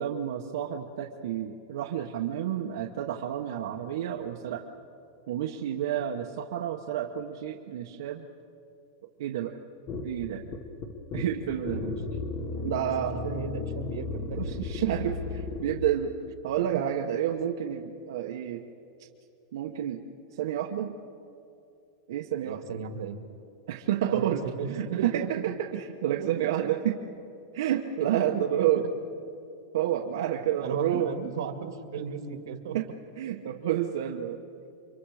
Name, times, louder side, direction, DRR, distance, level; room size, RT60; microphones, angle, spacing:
voice 1, 0.0-4.7 5.3-8.3 9.2-9.5 10.0-10.4 11.1-11.9 12.6-13.2 14.4-15.2 15.6-16.1 16.4-18.6 19.5-20.0 20.3-20.9 22.1-22.8 23.7-27.0 27.5-28.8 29.7-31.1 32.7-32.8 33.2-34.4, right 10 dB, 65° right, 1 dB, 1.2 m, -30 dB
sound 1, 9.9-15.8, left 4 dB, 20° left, 1.6 m, -34 dB
voice 2, 13.2-15.1 16.6-16.8 22.4-23.2 24.1-25.3 26.2-26.7 28.3-28.4 30.6-32.8, right 7 dB, 85° right, 7 dB, 2.1 m, -35 dB
29.5 x 24.5 x 5.0 m, 2.6 s
supercardioid pair, 180°, 2 cm